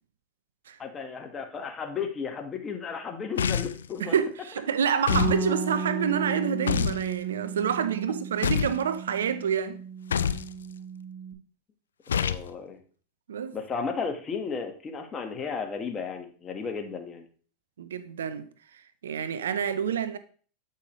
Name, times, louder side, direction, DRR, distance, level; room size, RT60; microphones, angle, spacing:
voice 1, 0.8-4.2 12.1-12.8 13.5-17.3, left 5 dB, 25° left, 1.3 m, -34 dB
sound 1, 3.4-3.9 5.1-5.4 6.7-7.0 8.4-8.8 10.1-10.5 12.1-12.5, left 8 dB, 90° left, 0.3 m, -26 dB
voice 2, 4.0-9.8 13.3-13.6 17.8-18.5 18.7-20.2, right 7 dB, 85° right, 0.5 m, -28 dB
Bass guitar, 5.1-11.3, right 4 dB, ahead, 1.5 m, -34 dB
8.1 x 5.6 x 3.0 m
hypercardioid pair, 100°, 0 cm